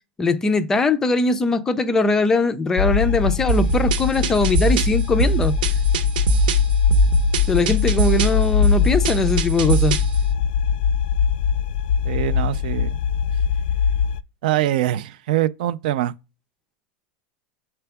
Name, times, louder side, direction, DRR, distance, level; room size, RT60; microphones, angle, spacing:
voice 1, 0.2-5.5 7.5-10.0, left 3 dB, 10° left, 0.4 m, -20 dB
sound 1, 2.8-14.2, left 8 dB, 85° left, 0.3 m, -21 dB
sound 2, 3.5-10.2, right 6 dB, 80° right, 1.1 m, -22 dB
voice 2, 12.0-13.0 14.4-16.1, right 13 dB, 65° right, 0.4 m, -23 dB
6.8 x 4.3 x 3.4 m
supercardioid pair, 175°, 5 cm